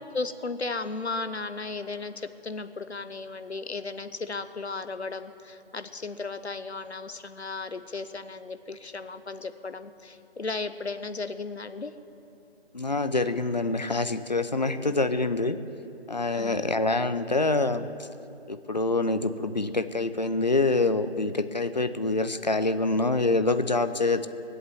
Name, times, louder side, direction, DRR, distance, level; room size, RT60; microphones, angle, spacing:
voice 1, 0.1-11.9 16.3-16.6, left 3 dB, 80° left, 11 dB, 1.0 m, -35 dB
voice 2, 12.7-15.6 16.1-17.9 18.5-24.3, left 2 dB, 40° left, 11 dB, 0.6 m, -26 dB
20.5 x 8.0 x 7.7 m, 2.8 s
figure-of-eight pair, 165°, 33 cm